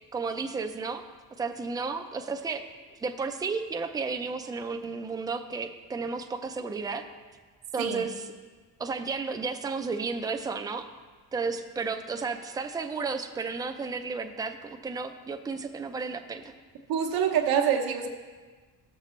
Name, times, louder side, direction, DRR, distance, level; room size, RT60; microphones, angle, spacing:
voice 1, 0.1-1.0 1.4-2.6 2.9-7.1 7.7-8.2 8.8-10.9 11.3-16.4, right 4 dB, 10° right, 6 dB, 0.4 m, -33 dB
voice 2, 16.9-18.1, right 8 dB, 85° right, 1 dB, 1.0 m, -25 dB
15.5 x 6.7 x 3.1 m, 1.4 s
cardioid pair, 155°, 35 cm